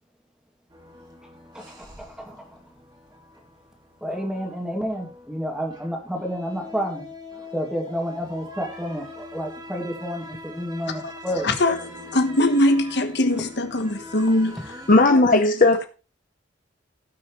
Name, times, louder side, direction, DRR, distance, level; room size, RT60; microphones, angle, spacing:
sound 1, 0.7-14.9, left 2 dB, 25° right, 2.5 m, -43 dB
voice 1, 1.5-2.4 4.0-7.0 7.5-11.5, equal, 5° right, 2.4 m, -30 dB
voice 2, 11.4-15.5, left 1 dB, 60° left, 1.3 m, -23 dB
voice 3, 14.9-15.9, left 2 dB, 45° left, 0.8 m, -16 dB
17.5 x 6.3 x 3.2 m
head